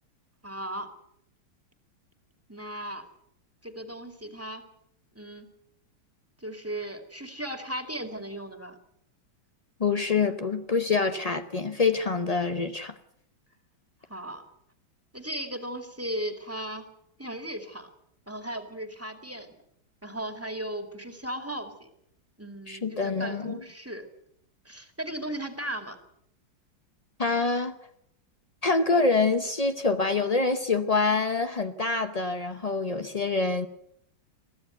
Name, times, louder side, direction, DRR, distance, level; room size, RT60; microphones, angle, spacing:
voice 1, 0.4-0.9 2.5-3.0 3.6-4.6 5.1-5.5 6.4-8.8 14.1-14.4 15.1-16.9 17.2-17.9 18.3-19.6 20.0-21.9 22.4-24.1 24.6-26.0, right 1 dB, 5° right, 6 dB, 2.2 m, -36 dB
voice 2, 9.8-12.9 22.7-23.6 27.2-27.7 28.6-33.7, left 4 dB, 80° left, 8 dB, 0.3 m, -26 dB
22.5 x 15.0 x 8.1 m, 0.74 s
omnidirectional pair, 2.2 m